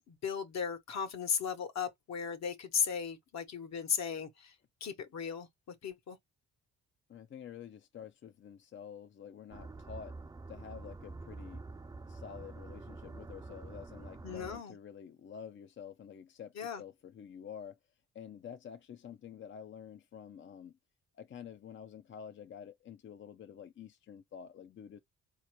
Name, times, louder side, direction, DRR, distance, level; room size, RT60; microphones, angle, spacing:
voice 1, 0.1-4.5 4.8-6.2 14.2-14.8 16.6-16.8, left 6 dB, 60° left, 1.3 m, -36 dB
voice 2, 7.1-10.2 10.5-11.6 12.1-17.8 18.1-20.8 21.1-25.0, left 8 dB, 40° left, 0.5 m, -49 dB
sound 1, 9.5-14.6, right 3 dB, 15° right, 0.4 m, -47 dB
4.3 x 2.9 x 3.1 m
cardioid pair, 90°, 30 cm